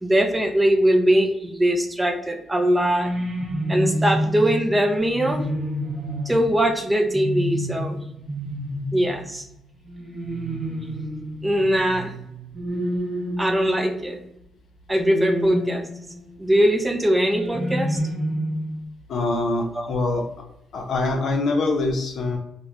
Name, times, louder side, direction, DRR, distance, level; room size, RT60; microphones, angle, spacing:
voice 1, 0.0-3.2 3.7-5.5 6.3-8.0 8.9-9.5 11.4-12.1 13.4-14.2 14.9-15.9 16.4-18.0 19.7-20.0, equal, 15° right, 5 dB, 0.4 m, -21 dB
sound 1, 2.6-14.2 15.0-16.3 17.2-18.8, equal, 30° right, 0.8 m, -29 dB
voice 2, 19.1-20.2 20.7-22.4, left 2 dB, 60° left, 2 dB, 0.5 m, -24 dB
3.0 x 2.1 x 2.3 m, 0.81 s
cardioid pair, 90°, 0 cm